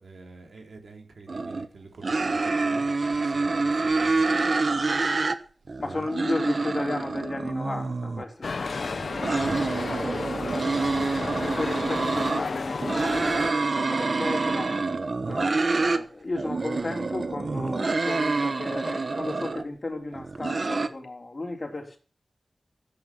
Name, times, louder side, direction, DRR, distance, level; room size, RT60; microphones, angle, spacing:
voice 1, 0.0-5.2 5.6-5.8 9.3-11.7, right 3 dB, 90° right, 3.7 m, -48 dB
sound 1, 1.3-1.7 2.0-5.4 5.7-8.2 9.0-12.4 12.8-16.0 16.3-19.6 20.1-20.9, right 3 dB, 60° right, 1.1 m, -27 dB
voice 2, 5.8-10.1 11.3-14.7 15.3-22.0, left 2 dB, 45° left, 3.4 m, -34 dB
sound 2, 8.4-13.5, left 4 dB, 80° left, 0.8 m, -32 dB
13.5 x 9.5 x 5.9 m
wide cardioid pair, 65°, 0 cm